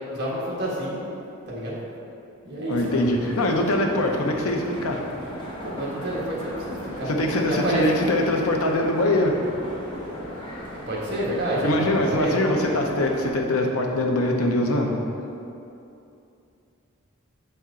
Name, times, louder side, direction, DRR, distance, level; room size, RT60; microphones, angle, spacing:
voice 1, 0.1-1.0 1.5-1.7 2.4-3.0 5.6-7.1 7.4-8.1 10.9-12.4, right 1 dB, 50° right, -6 dB, 1.3 m, -28 dB
voice 2, 2.7-5.0 7.1-9.4 11.6-14.9, left 1 dB, 80° left, 1 dB, 0.7 m, -23 dB
sound 1, 2.7-13.3, equal, 20° left, 0.9 m, -36 dB
6.8 x 4.4 x 3.7 m, 2.7 s
head